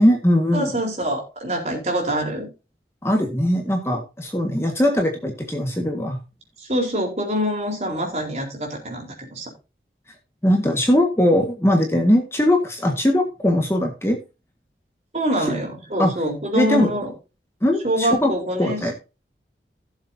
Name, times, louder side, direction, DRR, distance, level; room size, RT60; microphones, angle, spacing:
voice 1, 0.0-0.7 3.0-6.2 10.4-14.2 16.0-16.1 16.5-16.9 17.6-18.9, left 1 dB, 15° left, 2 dB, 1.6 m, -20 dB
voice 2, 0.5-2.5 6.6-9.5 15.1-17.1 17.8-18.9, equal, 40° right, 0 dB, 4.1 m, -25 dB
16.5 x 7.3 x 2.7 m, 0.29 s
head